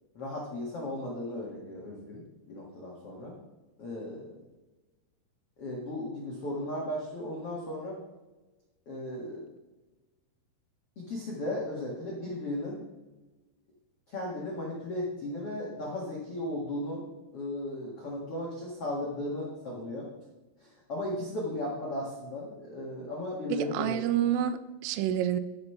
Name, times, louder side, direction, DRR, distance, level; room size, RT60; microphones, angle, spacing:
voice 1, 0.1-3.4 3.8-4.4 5.6-8.0 8.8-9.4 10.9-12.8 14.1-17.1 17.3-20.1 20.6-24.0, left 1 dB, 70° left, -4 dB, 1.3 m, -36 dB
voice 2, 23.5-25.4, right 10 dB, 90° right, 12 dB, 3.2 m, -28 dB
14.0 x 5.4 x 5.6 m, 1.1 s
omnidirectional pair, 5.8 m